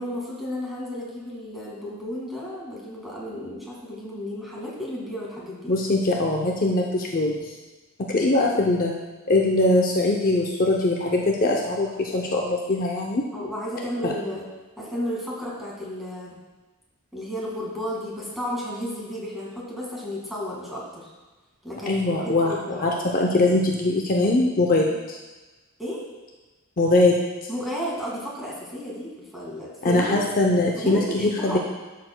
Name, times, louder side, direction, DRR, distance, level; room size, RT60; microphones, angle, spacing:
voice 1, 0.0-5.7 8.4-8.6 13.3-14.4 14.8-16.4 17.1-21.1 21.6-23.0 24.8-25.0 25.8-26.1 27.5-30.2 30.8-31.6, equal, ahead, -5 dB, 2.0 m, -33 dB
voice 2, 5.7-7.5 8.1-8.9 9.3-13.3 14.0-14.1 21.9-25.2 26.8-27.2 29.8-31.6, left 2 dB, 40° left, -1 dB, 0.6 m, -22 dB
12.5 x 6.6 x 2.2 m, 1.2 s
head